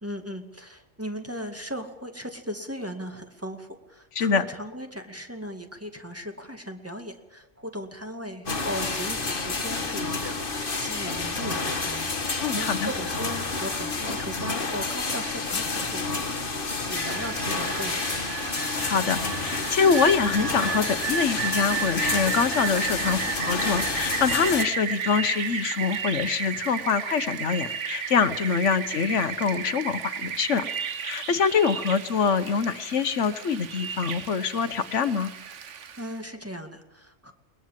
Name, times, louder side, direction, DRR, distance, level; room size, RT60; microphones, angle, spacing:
voice 1, 0.0-18.3 35.6-37.3, equal, 10° right, 5 dB, 2.3 m, -38 dB
sound 1, 8.5-24.6, left 3 dB, 45° left, 2.0 m, -29 dB
voice 2, 12.4-12.9 18.9-30.7 31.0-35.3, left 6 dB, 80° left, 13 dB, 1.4 m, -25 dB
Rain, 16.7-36.2, right 7 dB, 80° right, 1.4 m, -33 dB
21.5 x 21.0 x 7.5 m, 1.0 s
omnidirectional pair, 1.2 m